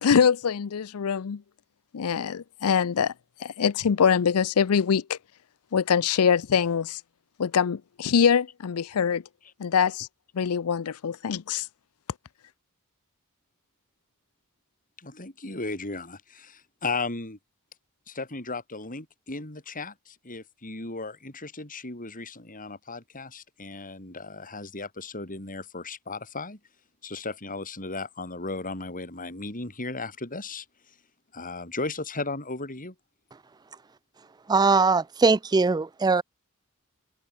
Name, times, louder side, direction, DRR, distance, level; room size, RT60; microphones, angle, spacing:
voice 1, 0.0-1.4 1.9-3.1 3.4-5.2 5.7-7.0 7.4-9.2 9.6-10.1 10.3-11.7, left 7 dB, 75° left, 0.5 m, -23 dB
voice 2, 15.0-17.4 18.1-26.6 27.0-30.6 31.3-32.9, left 3 dB, 40° left, 6.1 m, -35 dB
voice 3, 34.5-36.2, right 4 dB, 20° right, 0.4 m, -21 dB
open air
head